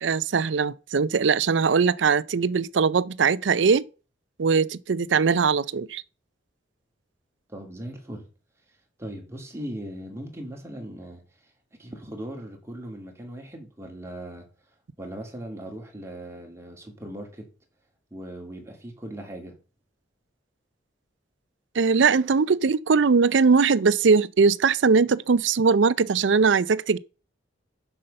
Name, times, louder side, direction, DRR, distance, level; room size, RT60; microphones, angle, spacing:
voice 1, 0.0-3.9 4.4-6.0 21.7-27.0, right 5 dB, 75° right, 0.5 m, -21 dB
voice 2, 7.5-8.3 9.0-11.2 11.8-14.5 15.0-17.5 18.1-19.6, right 1 dB, 15° right, 2.5 m, -38 dB
7.7 x 5.6 x 6.6 m
head